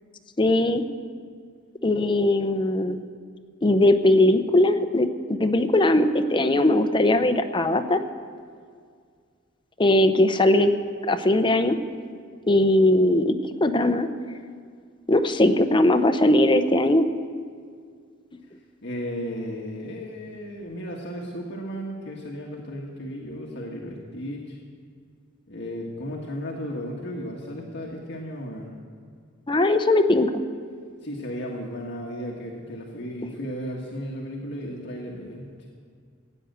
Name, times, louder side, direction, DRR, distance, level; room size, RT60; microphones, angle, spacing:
voice 1, 0.4-0.8 1.8-3.0 3.6-8.0 9.8-10.7 11.1-11.8 12.5-13.3 13.6-14.1 15.1-17.1 29.5-30.4, left 1 dB, 25° left, 7 dB, 0.7 m, -20 dB
voice 2, 18.8-24.6 25.5-28.7 31.0-35.7, equal, 60° left, -2 dB, 1.6 m, -34 dB
16.0 x 9.2 x 8.1 m, 2.1 s
head